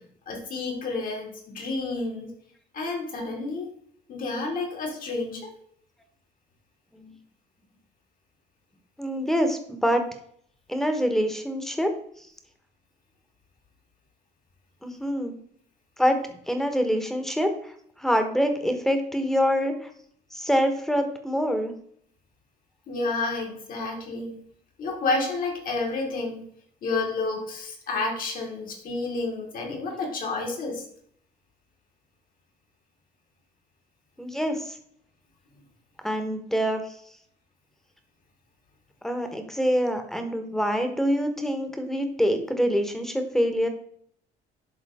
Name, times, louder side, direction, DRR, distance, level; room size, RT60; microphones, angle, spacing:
voice 1, 0.3-2.3 2.7-3.7 4.1-5.5 22.9-24.4 24.8-26.4 26.8-30.8, left 3 dB, 55° left, 1 dB, 2.5 m, -30 dB
voice 2, 9.0-10.0 10.7-11.9 14.8-15.3 16.0-16.2 16.5-17.7 18.0-19.7 20.3-21.7 34.2-34.8 36.0-36.8 39.0-43.7, equal, ahead, 6 dB, 1.2 m, -25 dB
11.0 x 3.8 x 3.6 m, 0.64 s
cardioid pair, 110°, 17 cm